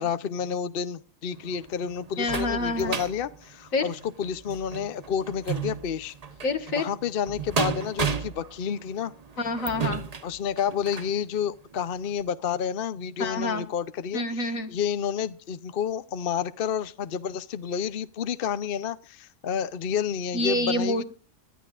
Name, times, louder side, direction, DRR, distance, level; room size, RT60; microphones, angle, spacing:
voice 1, 0.0-6.1 6.7-9.1 10.2-21.0, left 7 dB, 50° left, 0.8 m, -30 dB
sound 1, 1.3-11.2 11.7-11.8 12.2-12.3, right 6 dB, 35° right, 0.9 m, -34 dB
voice 2, 2.2-3.0 3.7-3.8 6.4-6.9 9.4-10.0 13.2-13.7 14.1-14.7 20.3-21.0, left 2 dB, 80° left, 2.1 m, -27 dB
23.0 x 12.0 x 2.5 m
omnidirectional pair, 1.4 m